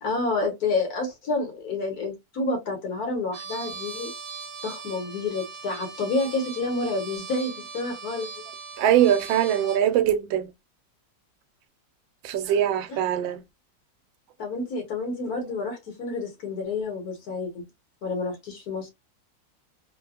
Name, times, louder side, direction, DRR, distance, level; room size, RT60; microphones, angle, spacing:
voice 1, 0.0-4.1 4.6-8.4 12.4-12.6 12.9-13.0 14.4-17.6 18.0-18.9, left 3 dB, 60° left, 1.2 m, -29 dB
Trumpet, 3.3-9.9, right 5 dB, 60° right, 1.2 m, -40 dB
voice 2, 8.8-10.5 12.2-13.4, right 10 dB, 85° right, 1.3 m, -22 dB
3.2 x 2.2 x 2.3 m
omnidirectional pair, 2.0 m